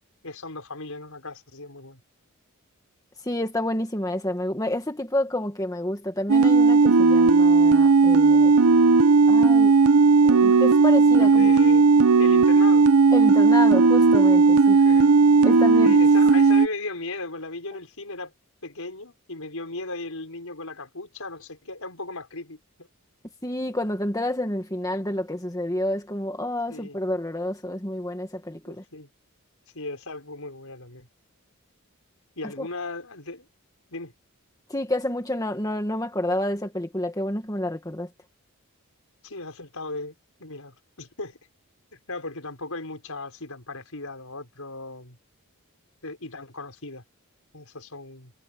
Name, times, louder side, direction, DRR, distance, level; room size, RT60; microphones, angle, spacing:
voice 1, 0.2-2.0 11.2-11.9 12.2-12.9 14.7-15.2 15.8-18.3 18.6-22.9 26.7-27.0 28.7-29.1 29.7-31.1 32.4-33.5 33.9-34.1 39.2-41.4 41.9-45.2 46.0-47.0 47.5-48.3, left 2 dB, 75° left, 5.4 m, -37 dB
voice 2, 3.2-8.5 9.3-9.7 10.2-11.5 13.1-14.8 15.4-15.9 23.4-28.8 32.6-32.7 34.7-38.1, left 1 dB, 15° left, 1.7 m, -29 dB
sound 1, 6.3-16.7, right 4 dB, 80° right, 0.7 m, -16 dB
head